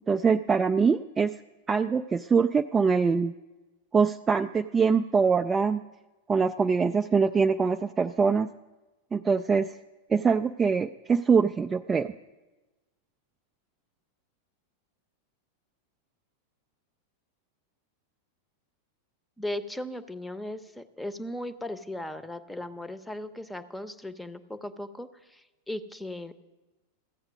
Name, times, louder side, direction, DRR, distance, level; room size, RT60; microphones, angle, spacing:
voice 1, 0.1-1.3 1.7-3.3 3.9-5.8 6.3-8.5 9.1-9.8 10.1-12.1, right 5 dB, 15° right, 8 dB, 0.3 m, -23 dB
voice 2, 19.4-26.3, left 1 dB, 5° left, 13 dB, 0.8 m, -37 dB
14.5 x 7.9 x 6.2 m, 1.2 s
figure-of-eight pair, 90°, 0 cm